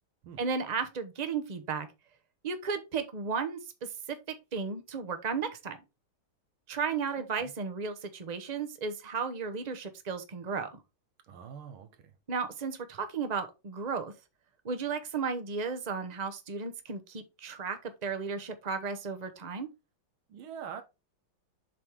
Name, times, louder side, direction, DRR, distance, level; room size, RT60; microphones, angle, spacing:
voice 1, 0.4-1.9 2.4-4.2 4.5-5.8 6.7-10.8 12.3-14.1 14.6-19.7, right 5 dB, 40° right, 0.6 m, -34 dB
voice 2, 7.2-7.5 11.3-11.9 20.3-20.8, right 7 dB, 85° right, 1.9 m, -44 dB
7.5 x 3.7 x 4.7 m
omnidirectional pair, 2.3 m